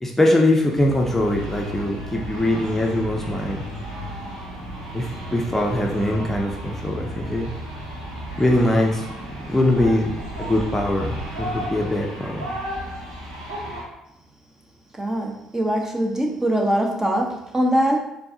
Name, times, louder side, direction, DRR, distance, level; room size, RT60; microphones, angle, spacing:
voice 1, 0.0-3.6 4.9-7.5 8.4-9.1 9.5-12.5, left 1 dB, 10° left, -1 dB, 0.7 m, -22 dB
sound 1, 0.6-13.8, equal, 85° right, 1.0 m, -33 dB
voice 2, 15.0-18.0, right 1 dB, 20° right, 1 dB, 0.9 m, -22 dB
4.4 x 3.3 x 2.7 m, 0.84 s
hypercardioid pair, 50°, 2 cm